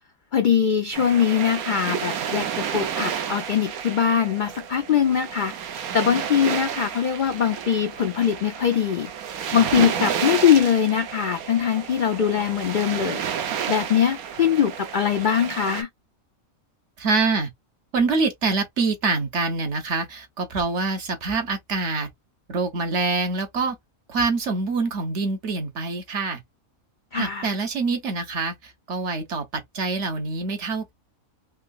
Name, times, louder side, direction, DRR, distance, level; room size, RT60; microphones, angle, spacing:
voice 1, 0.3-5.5 5.9-9.1 9.5-13.2 13.7-15.9 27.1-27.5, left 8 dB, 70° left, 0.4 m, -22 dB
sound 1, 0.9-15.8, right 8 dB, 85° right, 1.2 m, -31 dB
voice 2, 17.0-17.5 17.9-22.1 22.5-23.8 24.1-26.4 27.1-30.9, right 3 dB, 60° right, 1.2 m, -25 dB
3.7 x 3.0 x 2.3 m
omnidirectional pair, 1.5 m